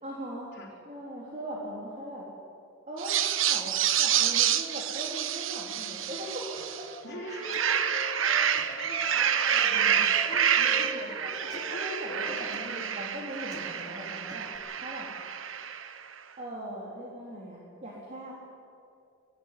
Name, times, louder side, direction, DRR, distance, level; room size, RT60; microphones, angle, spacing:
voice 1, 0.0-0.5 0.9-2.2 2.9-3.2 3.4-6.9 11.7-14.5 14.8-15.1 16.4-18.3, right 1 dB, 35° right, -4 dB, 3.7 m, -40 dB
sound 1, 3.0-6.9 7.3-16.0, right 9 dB, 85° right, 1.1 m, -28 dB
Wind instrument woodwind instrument, 6.2-9.2 9.5-12.6, equal, 55° right, 3.2 m, -44 dB
Human voice, 6.6-14.6, left 2 dB, 20° left, 3.1 m, -55 dB
voice 2, 7.0-12.8 13.7-13.8, left 1 dB, 60° left, -3 dB, 4.1 m, -41 dB
22.5 x 16.5 x 10.0 m, 2.5 s
head